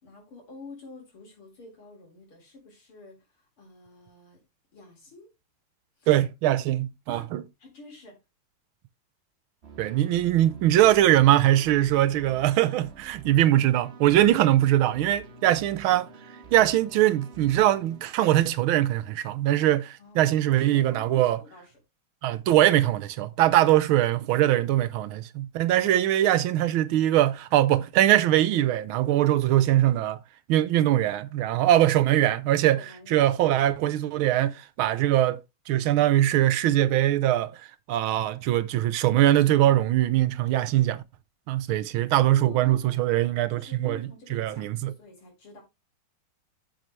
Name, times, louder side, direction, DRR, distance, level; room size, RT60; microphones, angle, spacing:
voice 1, 0.0-4.4 4.7-5.3 6.0-6.2 7.1-7.3 7.6-8.2 20.0-21.7 32.8-33.8 42.1-43.2 43.5-45.6, left 3 dB, 90° left, 4.8 m, -48 dB
voice 2, 6.1-7.4 9.8-16.1 16.5-21.4 22.2-30.2 30.5-32.8 33.1-35.4 35.7-37.5 37.9-41.0 41.5-44.0 44.3-44.9, right 13 dB, 80° right, 1.5 m, -22 dB
sound 1, 9.6-18.1, right 5 dB, 35° right, 1.3 m, -47 dB
9.4 x 7.3 x 3.2 m
omnidirectional pair, 2.3 m